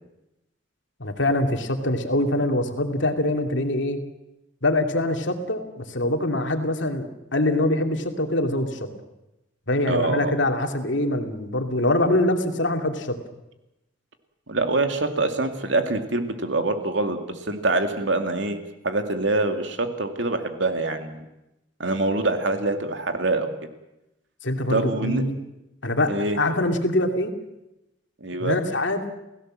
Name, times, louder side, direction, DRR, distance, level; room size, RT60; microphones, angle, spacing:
voice 1, 1.0-4.0 4.6-8.9 9.7-13.2 24.4-25.4 25.8-27.3 28.4-29.0, left 1 dB, 65° left, 5 dB, 2.5 m, -24 dB
voice 2, 9.9-10.3 14.5-21.2 21.8-23.5 24.7-25.2 26.1-26.4 28.2-28.6, right 2 dB, 65° right, 6 dB, 2.5 m, -25 dB
29.0 x 16.5 x 7.6 m, 0.92 s
head